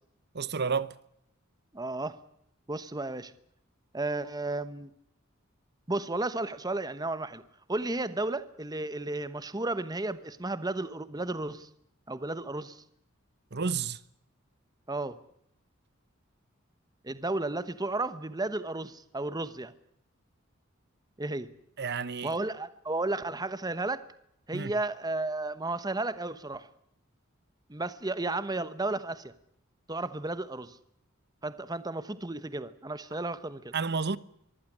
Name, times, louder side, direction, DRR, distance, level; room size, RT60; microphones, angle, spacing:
voice 1, 0.3-0.9 13.5-14.0 21.8-22.3 24.5-24.7 33.7-34.2, right 5 dB, 50° right, 1.0 m, -30 dB
voice 2, 1.7-2.2 2.7-3.3 3.9-4.9 5.9-7.4 7.7-11.7 12.1-12.8 14.9-15.2 17.0-19.7 21.2-21.5 22.2-24.0 24.5-26.7 27.7-29.3 29.9-30.8 31.4-33.7, right 2 dB, 20° right, 1.1 m, -33 dB
24.0 x 15.5 x 9.9 m
head